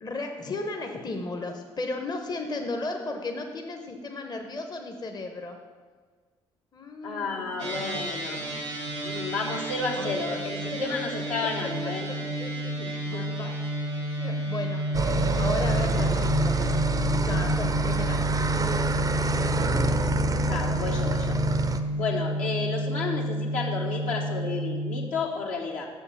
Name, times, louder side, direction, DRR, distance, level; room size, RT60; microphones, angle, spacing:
voice 1, 0.0-5.6 6.7-8.6 10.0-10.2 10.7-11.0 12.4-12.7 13.0-13.6 14.2-14.8 15.1-16.5 17.2-18.2 18.6-18.9 22.0-22.1, left 2 dB, 30° left, 4 dB, 0.8 m, -35 dB
voice 2, 7.0-8.4 9.0-12.1 12.8-13.3 20.5-21.4 22.0-25.9, left 3 dB, 65° left, -1 dB, 1.1 m, -32 dB
sound 1, 7.6-25.1, equal, 85° right, 1.1 m, -30 dB
sound 2, 14.9-21.8, right 2 dB, 25° right, 0.5 m, -27 dB
7.0 x 4.6 x 6.5 m, 1.5 s
figure-of-eight pair, 45°, 14 cm